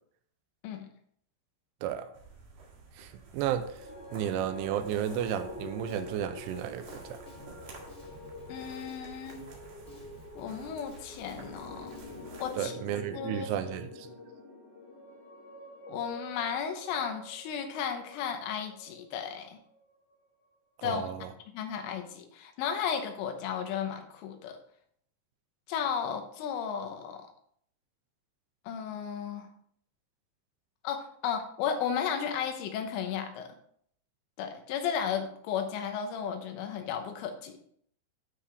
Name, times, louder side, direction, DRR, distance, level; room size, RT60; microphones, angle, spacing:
sound 1, 2.1-12.6, right 3 dB, 55° right, 3.1 m, -52 dB
voice 1, 3.0-3.6 4.1-7.2 12.6-14.1 20.8-21.3, right 10 dB, 85° right, 10 dB, 3.0 m, -33 dB
sound 2, 3.6-19.9, left 2 dB, 60° left, 2.2 m, -47 dB
Drum kit, 4.4-12.3, left 1 dB, 45° left, 0.9 m, -55 dB
voice 2, 8.5-9.4 10.4-11.9 12.4-12.7 13.1-13.6 15.8-19.6 20.8-21.1 21.5-24.6 25.7-27.3 28.7-29.5 30.8-33.6 34.4-37.6, left 7 dB, 85° left, 6 dB, 3.5 m, -34 dB
12.5 x 4.9 x 3.4 m, 0.64 s
omnidirectional pair, 5.6 m